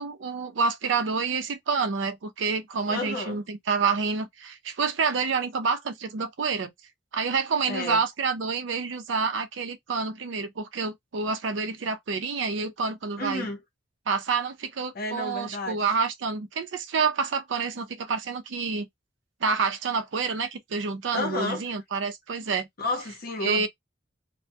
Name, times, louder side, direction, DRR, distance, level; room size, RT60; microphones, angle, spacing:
voice 1, 0.0-6.7 7.1-13.5 14.1-18.9 19.4-22.7 23.4-23.7, right 5 dB, 75° right, 0.5 m, -28 dB
voice 2, 2.9-3.4 7.7-8.0 13.2-13.6 14.9-15.8 21.1-21.7 22.8-23.7, left 2 dB, 50° left, 0.7 m, -31 dB
2.2 x 2.1 x 2.7 m
head